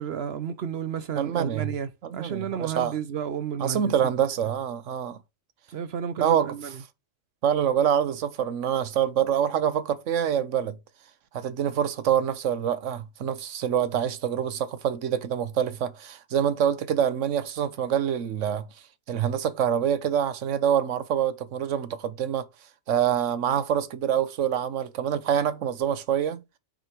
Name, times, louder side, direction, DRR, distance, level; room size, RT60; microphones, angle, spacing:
voice 1, 0.0-4.1 5.7-6.8, right 8 dB, 60° right, 0.9 m, -32 dB
voice 2, 1.2-1.7 2.0-2.9 3.6-5.2 6.2-6.5 7.4-10.8 11.3-18.7 19.1-22.5 22.9-26.4, right 9 dB, 85° right, 1.2 m, -26 dB
6.4 x 5.1 x 4.5 m
omnidirectional pair, 1.3 m